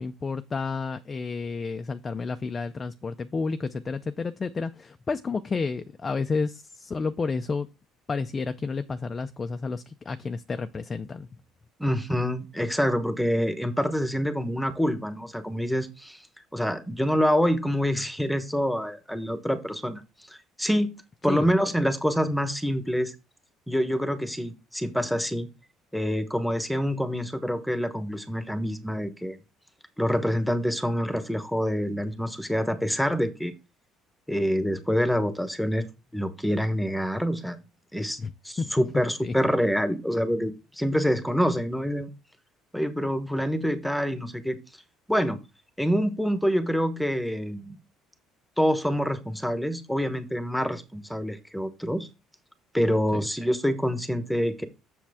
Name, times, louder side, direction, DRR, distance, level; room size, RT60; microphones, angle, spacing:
voice 1, 0.0-7.7 8.1-11.3 21.3-21.5 38.2-39.3 53.1-53.2, left 4 dB, 25° left, 0.5 m, -31 dB
voice 2, 11.8-16.2 16.5-20.0 20.3-20.9 21.2-23.1 23.7-25.5 25.9-29.4 30.0-33.5 34.3-35.9 36.1-37.6 37.9-38.2 38.4-42.1 42.7-44.6 45.1-45.4 45.8-47.8 48.6-52.1 52.7-54.7, equal, ahead, 1.1 m, -26 dB
7.5 x 7.1 x 3.5 m
cardioid pair, 135°, 0 cm